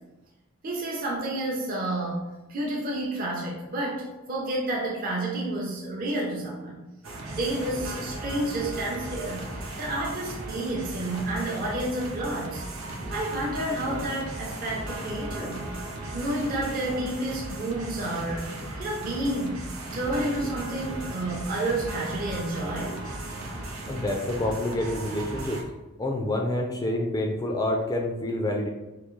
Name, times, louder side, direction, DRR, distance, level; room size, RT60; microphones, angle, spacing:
voice 1, 0.6-6.8 7.3-12.6 13.1-15.7 16.1-18.5 18.8-19.6 19.9-23.0, right 1 dB, 40° right, -3 dB, 0.6 m, -30 dB
sound 1, 7.0-25.6, right 2 dB, 75° right, 0.7 m, -36 dB
voice 2, 23.9-25.6 26.0-28.7, left 1 dB, 15° left, 1 dB, 0.3 m, -27 dB
3.6 x 2.7 x 3.1 m, 1.1 s
head